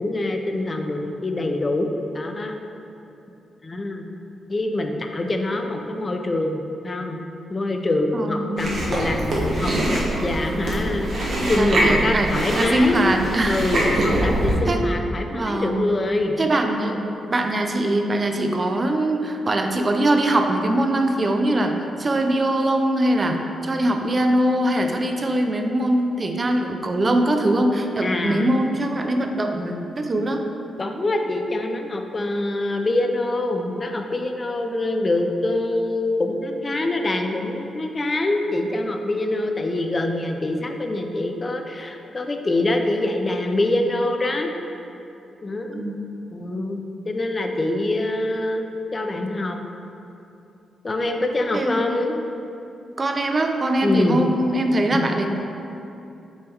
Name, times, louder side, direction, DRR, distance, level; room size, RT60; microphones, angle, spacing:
voice 1, 0.0-2.6 3.6-4.1 4.5-7.2 7.5-13.0 13.4-16.4 16.8-17.3 28.0-28.6 30.8-44.5 45.4-45.9 46.3-49.6 50.8-52.2 53.8-54.2 54.9-55.0, left 2 dB, 35° left, 4 dB, 0.5 m, -25 dB
voice 2, 8.1-8.7 11.4-13.7 13.9-14.1 14.7-14.8 15.3-15.9 16.4-17.0 17.3-30.5 45.8-46.0 51.5-51.9 53.0-55.3, right 1 dB, 40° right, 4 dB, 0.5 m, -22 dB
Chewing mastication, 8.6-14.6, right 1 dB, 65° right, 1.3 m, -23 dB
6.3 x 3.5 x 4.6 m, 2.8 s
cardioid pair, 60°, 0 cm